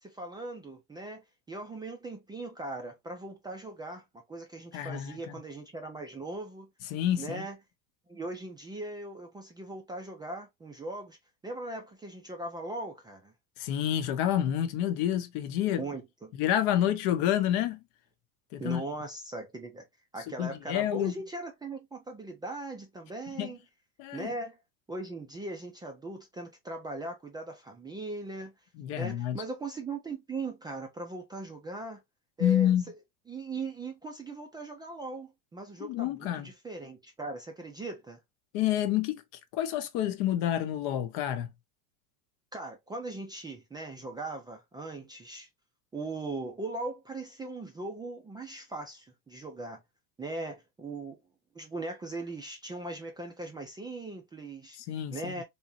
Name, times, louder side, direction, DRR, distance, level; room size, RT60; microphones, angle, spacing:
voice 1, 0.0-6.7 7.2-7.6 8.1-11.2 11.4-13.3 15.8-16.3 18.6-19.9 20.1-23.6 24.1-24.6 24.9-28.5 29.0-32.0 32.4-32.7 33.3-38.2 42.5-45.5 45.9-49.8 50.2-51.2 51.5-54.8 55.1-55.4, right 2 dB, 10° right, 0.4 m, -39 dB
voice 2, 4.7-5.3 6.9-7.4 13.6-15.8 16.4-17.8 18.5-18.8 20.4-21.1 23.4-23.5 24.0-24.3 28.8-29.4 32.4-32.8 35.8-36.5 38.5-39.2 39.5-41.5 54.8-55.4, left 11 dB, 55° left, 0.8 m, -28 dB
3.6 x 2.9 x 2.6 m
supercardioid pair, 135°, 41 cm